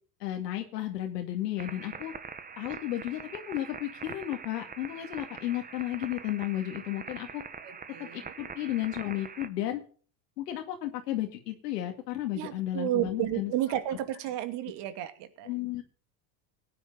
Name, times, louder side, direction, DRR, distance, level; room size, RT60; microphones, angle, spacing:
voice 1, 0.2-2.1 2.6-7.4 8.0-9.8 10.4-13.5 15.4-15.8, left 13 dB, 85° left, 3 dB, 2.3 m, -33 dB
sound 1, 1.6-9.5, right 5 dB, 20° right, 1.2 m, -44 dB
voice 2, 7.6-8.4 12.3-15.5, right 12 dB, 60° right, 9 dB, 2.5 m, -32 dB
17.0 x 10.0 x 4.0 m, 0.41 s
supercardioid pair, 110°, 48 cm